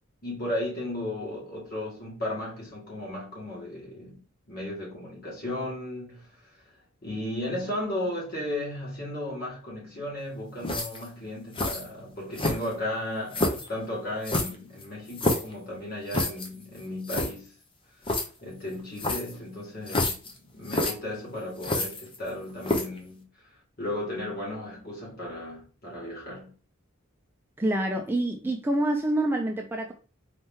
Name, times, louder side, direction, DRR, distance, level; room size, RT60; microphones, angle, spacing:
voice 1, 0.2-4.2 4.5-6.7 7.0-17.5 18.4-23.3 23.8-26.5, left 1 dB, 45° left, 2.1 m, -35 dB
sound 1, 10.6-11.1 11.5-11.9 12.3-12.8 13.3-13.7 14.2-15.5 16.1-16.5 16.8-16.9 17.1-17.3 18.0-18.3 19.0-19.4 19.9-20.3 20.7-20.9 21.6-22.3 22.6-23.0, left 2 dB, 25° left, 0.7 m, -28 dB
voice 2, 27.6-29.9, right 1 dB, 10° right, 0.4 m, -26 dB
4.3 x 2.9 x 3.6 m
head